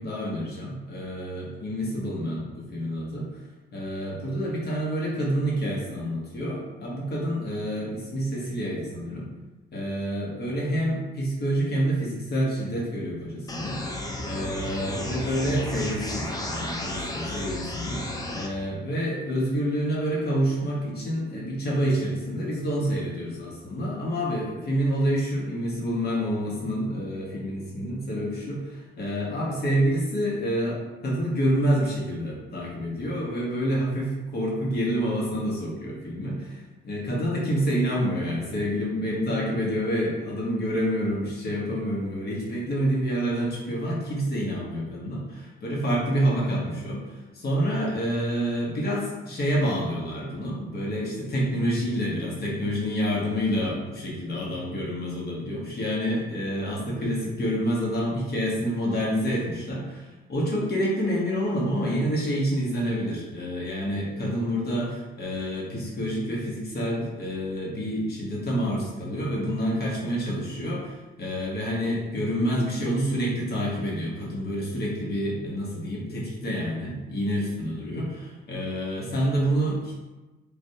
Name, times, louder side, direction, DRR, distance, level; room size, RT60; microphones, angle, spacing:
voice 1, 0.0-3.2 3.7-9.3 9.7-13.8 14.2-79.9, equal, 50° left, -4 dB, 1.0 m, -28 dB
sound 1, 13.5-18.5, left 1 dB, 20° left, 0.4 m, -33 dB
3.4 x 2.5 x 2.7 m, 1.1 s
cardioid pair, 115°, 21 cm